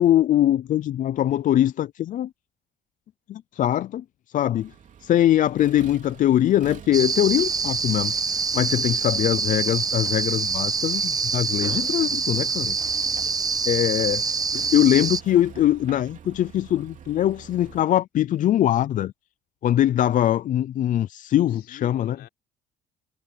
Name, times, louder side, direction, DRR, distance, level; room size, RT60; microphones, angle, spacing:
voice 1, 0.0-2.3 3.3-4.0 4.3-4.7 5.0-8.1 8.5-12.8 13.7-14.2 14.5-19.1 19.6-22.2, left 12 dB, 50° left, 0.5 m, -22 dB
Accelerating revving vroom, 4.6-17.8, right 8 dB, 50° right, 3.3 m, -46 dB
sound 1, 6.9-15.2, right 5 dB, 20° right, 0.7 m, -25 dB
voice 2, 13.2-13.6 21.3-22.3, left 13 dB, 75° left, 4.4 m, -47 dB
cardioid pair, 110°, 17 cm